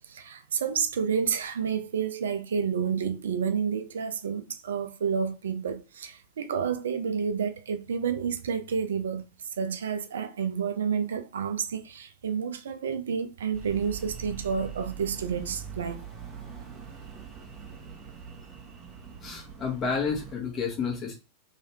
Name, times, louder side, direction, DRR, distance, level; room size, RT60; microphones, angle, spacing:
voice 1, 0.1-9.2 9.6-16.0, right 6 dB, 65° right, 0.5 m, -30 dB
sound 1, 13.5-20.3, right 7 dB, 20° right, 1.1 m, -43 dB
voice 2, 19.2-21.1, left 5 dB, 30° left, 1.5 m, -30 dB
3.1 x 3.1 x 3.1 m
figure-of-eight pair, 90°, 0 cm